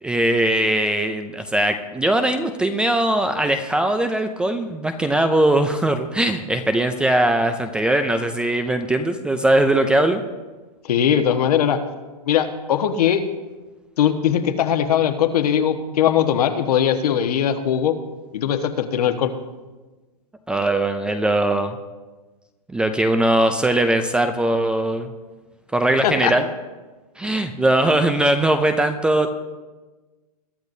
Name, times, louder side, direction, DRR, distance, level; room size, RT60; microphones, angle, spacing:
voice 1, 0.0-10.2 20.5-21.8 22.7-25.1 25.7-26.5 27.2-29.3, right 1 dB, 5° right, 7 dB, 0.4 m, -20 dB
voice 2, 10.8-11.8 12.3-13.2 14.0-18.0 18.3-19.3 26.0-26.3, left 9 dB, 70° left, 6 dB, 1.4 m, -20 dB
22.0 x 12.0 x 2.7 m, 1.2 s
hypercardioid pair, 150°, 20 cm